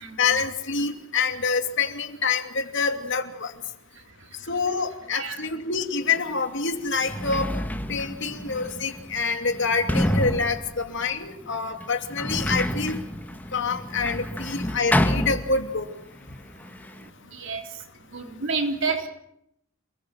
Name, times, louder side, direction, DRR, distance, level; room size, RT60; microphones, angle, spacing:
voice 1, 0.2-3.5 4.5-7.5 7.9-13.0 13.5-15.9, left 4 dB, 60° left, 6 dB, 2.8 m, -26 dB
voice 2, 4.0-4.4 5.1-5.4 17.2-17.8 18.1-19.1, right 4 dB, 60° right, 4 dB, 3.8 m, -30 dB
Sliding door, 6.1-6.2 6.8-16.0 16.3-17.1, equal, 10° left, 1.4 m, -29 dB
28.0 x 20.5 x 7.7 m, 0.75 s
head